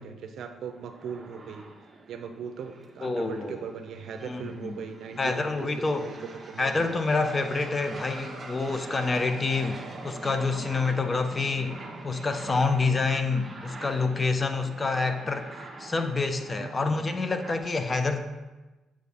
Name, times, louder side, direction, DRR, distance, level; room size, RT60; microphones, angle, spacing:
voice 1, 0.0-1.7 2.1-5.7 6.0-6.9 16.6-17.0, right 6 dB, 70° right, 6 dB, 0.6 m, -39 dB
sound 1, 0.7-17.6, right 2 dB, 30° right, 1.0 m, -44 dB
voice 2, 3.0-3.6 4.2-4.8 5.2-6.1 6.6-11.7 12.0-15.5 15.8-18.2, left 3 dB, 30° left, 7 dB, 0.5 m, -27 dB
7.4 x 4.2 x 3.4 m, 1.1 s
cardioid pair, 90°, 0 cm